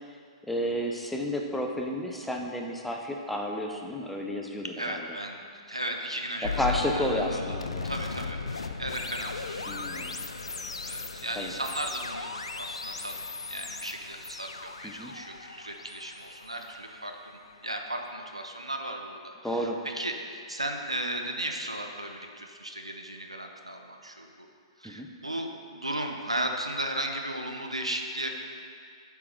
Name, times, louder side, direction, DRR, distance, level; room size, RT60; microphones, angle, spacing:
voice 1, 0.5-5.1 6.4-7.9 9.7-10.1 11.4-11.5 14.8-15.1 19.4-19.8 24.8-25.1, equal, 5° left, 1 dB, 0.7 m, -31 dB
voice 2, 4.6-7.6 7.8-10.1 10.4-13.2 13.5-24.5 24.8-28.3, right 1 dB, 90° right, 3 dB, 0.7 m, -36 dB
sound 1, 6.4-17.5, left 4 dB, 80° left, 0.4 m, -37 dB
8.3 x 4.7 x 5.2 m, 2.2 s
figure-of-eight pair, 110°, 3 cm